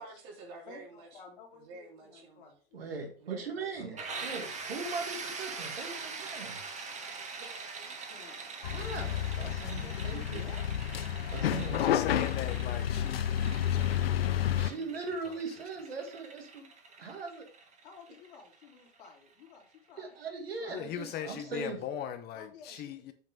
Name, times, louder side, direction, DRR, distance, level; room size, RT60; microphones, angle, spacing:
voice 1, 0.0-1.2 1.5-2.5 3.2-4.6 7.4-8.0, right 3 dB, 55° right, 2.9 m, -49 dB
voice 2, 0.7-2.9 5.5-5.7 8.0-8.5 10.3-10.7 11.7-12.2 12.5-13.1 17.8-20.1 20.6-21.7 22.3-23.1, left 5 dB, 65° left, 2.8 m, -53 dB
voice 3, 2.7-6.6 8.6-10.4 11.3-11.8 14.6-16.7 17.0-17.4 20.0-21.8 22.7-22.8, right 4 dB, 80° right, 2.3 m, -40 dB
voice 4, 3.8-4.1 11.7-13.4 13.7-14.8 15.2-15.4 20.7-23.1, left 9 dB, 35° left, 0.7 m, -40 dB
sound 1, 4.0-19.6, right 4 dB, 25° right, 1.5 m, -43 dB
sound 2, 8.6-14.7, left 10 dB, 80° left, 0.6 m, -30 dB
8.0 x 5.2 x 3.7 m
hypercardioid pair, 95°, 29 cm